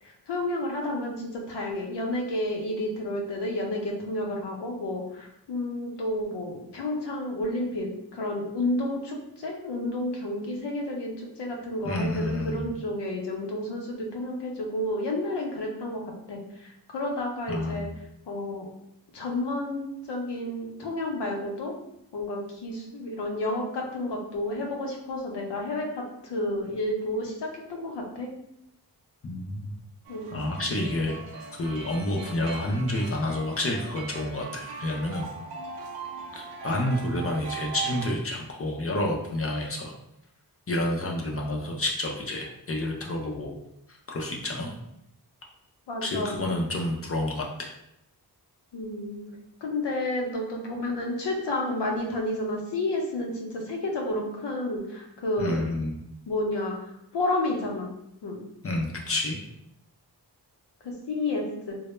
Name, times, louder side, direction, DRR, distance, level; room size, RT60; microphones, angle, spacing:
voice 1, 0.0-17.9 18.3-18.7 19.1-21.7 22.1-28.3 30.1-30.3 45.9-46.6 48.7-49.3 49.6-55.6 56.3-57.9 58.2-58.4 60.8-61.8, left 1 dB, 80° left, 0 dB, 0.6 m, -31 dB
voice 2, 11.8-12.7 17.5-17.9 29.2-29.7 30.3-31.2 31.5-35.3 36.3-39.9 40.7-43.5 44.1-44.7 46.0-47.7 55.4-56.0 58.6-59.4, left 1 dB, 35° left, 0 dB, 0.4 m, -29 dB
sound 1, 30.0-38.1, right 6 dB, 80° right, 0.6 m, -40 dB
2.1 x 2.0 x 3.0 m, 0.80 s
wide cardioid pair, 80°, 41 cm